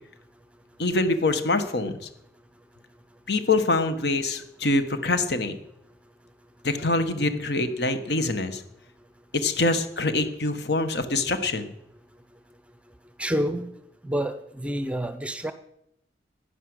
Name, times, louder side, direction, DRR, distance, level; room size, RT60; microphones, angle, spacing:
voice 1, 0.8-2.1 3.3-5.6 6.6-8.6 9.3-11.7, left 2 dB, 70° left, 9 dB, 1.3 m, -25 dB
voice 2, 13.2-13.7 14.1-14.3 14.6-15.5, equal, 5° right, 11 dB, 0.6 m, -27 dB
11.0 x 9.9 x 7.9 m, 0.80 s
head